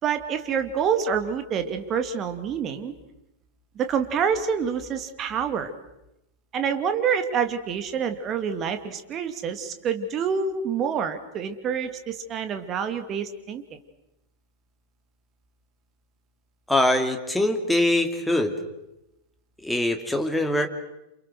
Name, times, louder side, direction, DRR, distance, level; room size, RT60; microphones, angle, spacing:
voice 1, 0.0-2.9 3.8-5.7 6.5-13.6, right 7 dB, 30° right, 8 dB, 2.7 m, -27 dB
voice 2, 16.7-18.5 19.6-20.7, left 1 dB, 5° left, 4 dB, 2.9 m, -23 dB
29.0 x 28.0 x 6.5 m, 0.91 s
figure-of-eight pair, 90°, 0 cm